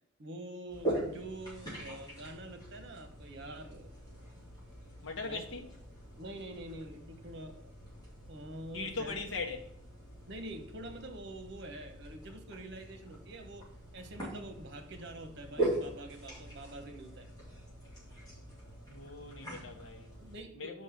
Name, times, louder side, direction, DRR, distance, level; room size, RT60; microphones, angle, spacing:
voice 1, 0.2-3.9 5.2-5.7 6.2-7.7 8.3-9.2 10.3-17.3 20.2-20.8, right 1 dB, 60° right, 1.1 m, -46 dB
sound 1, 0.7-20.4, right 1 dB, 20° left, 3.3 m, -42 dB
voice 2, 5.0-5.7 8.7-9.7 18.9-20.1 20.5-20.8, left 3 dB, 70° left, 1.1 m, -40 dB
5.4 x 5.3 x 6.6 m
head